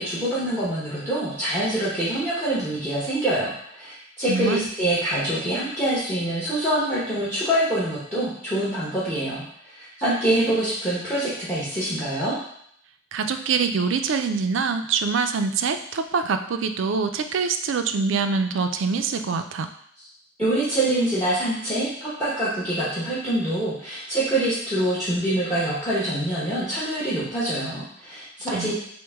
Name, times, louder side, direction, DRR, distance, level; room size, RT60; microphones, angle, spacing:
voice 1, 0.0-12.3 20.4-28.7, right 1 dB, 10° left, -8 dB, 1.0 m, -25 dB
voice 2, 4.3-4.7 13.1-19.7 28.5-28.7, right 5 dB, 70° right, 7 dB, 0.4 m, -24 dB
6.0 x 2.1 x 3.5 m, 0.68 s
head